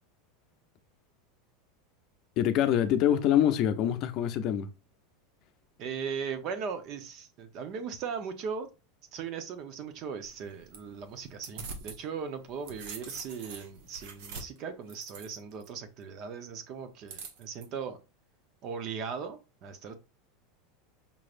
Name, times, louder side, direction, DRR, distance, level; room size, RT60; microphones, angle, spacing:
voice 1, 2.4-4.7, left 10 dB, 45° left, 0.6 m, -25 dB
voice 2, 5.8-8.7 9.1-18.0 18.6-19.9, right 6 dB, 45° right, 0.9 m, -38 dB
sound 1, 10.2-12.0 12.4-15.7 17.1-17.6, right 4 dB, 70° right, 1.1 m, -44 dB
5.4 x 3.2 x 2.5 m
supercardioid pair, 135°, 0 cm